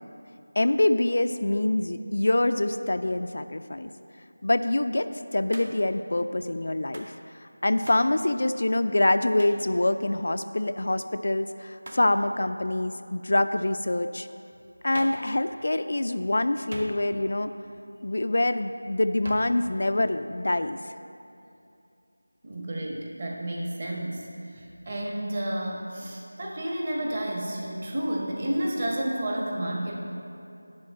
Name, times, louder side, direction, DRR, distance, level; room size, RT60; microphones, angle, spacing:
voice 1, 0.6-3.9 4.4-7.1 7.4-14.3 14.8-17.5 18.0-20.8, left 1 dB, 55° left, 9 dB, 0.3 m, -25 dB
Hands, 5.5-5.9 6.9-7.2 7.9-8.1 9.4-9.7 11.8-12.1 14.9-15.3 16.7-17.3 19.2-19.6, right 1 dB, 50° right, 0.9 m, -41 dB
voice 2, 22.4-29.9, right 1 dB, 35° right, -2 dB, 1.3 m, -31 dB
10.5 x 3.7 x 7.5 m, 2.6 s
figure-of-eight pair, 170°, 0 cm